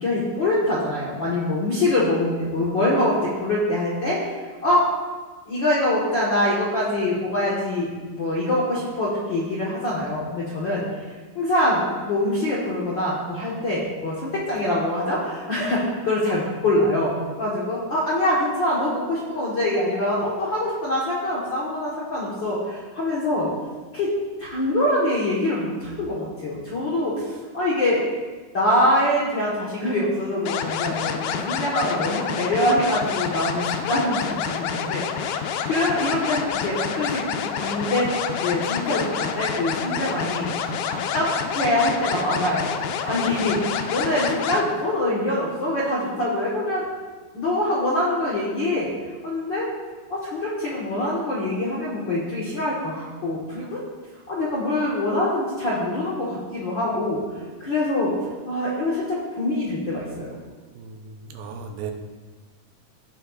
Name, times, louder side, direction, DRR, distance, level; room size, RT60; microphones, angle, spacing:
voice 1, 0.0-4.9 5.5-11.0 11.3-17.1 17.4-23.5 23.9-24.1 24.4-28.0 28.5-40.5 40.9-46.9 47.3-48.9 49.2-49.7 50.1-53.8 54.3-57.2 57.6-58.1 58.4-60.3, left 1 dB, 65° left, -7 dB, 1.1 m, -24 dB
sound 1, 30.5-44.6, left 7 dB, 85° left, 2.4 m, -28 dB
voice 2, 60.8-61.9, right 6 dB, 85° right, 4 dB, 2.5 m, -36 dB
16.5 x 6.4 x 2.4 m, 1.4 s
omnidirectional pair, 4.3 m